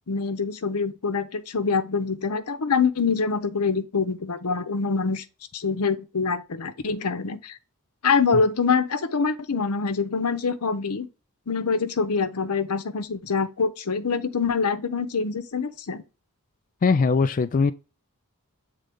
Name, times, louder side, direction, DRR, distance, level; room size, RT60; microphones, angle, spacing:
voice 1, 0.1-5.2 5.5-7.6 8.0-11.1 11.5-16.0, left 5 dB, 80° left, 0.8 m, -25 dB
voice 2, 16.8-17.7, left 4 dB, 35° left, 0.3 m, -20 dB
7.7 x 3.8 x 3.5 m
head